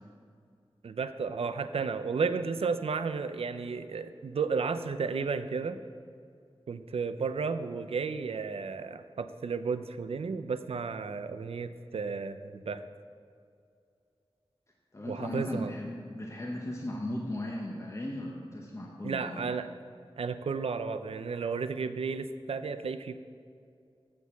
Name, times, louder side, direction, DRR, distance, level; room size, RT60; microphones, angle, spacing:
voice 1, 0.8-5.8 6.7-12.8 15.1-15.7 19.0-19.7 20.2-23.2, right 5 dB, 85° right, 10 dB, 0.5 m, -33 dB
voice 2, 14.9-19.5, left 1 dB, 30° left, -1 dB, 1.0 m, -37 dB
8.2 x 6.4 x 7.3 m, 2.4 s
wide cardioid pair, 85°, 10 cm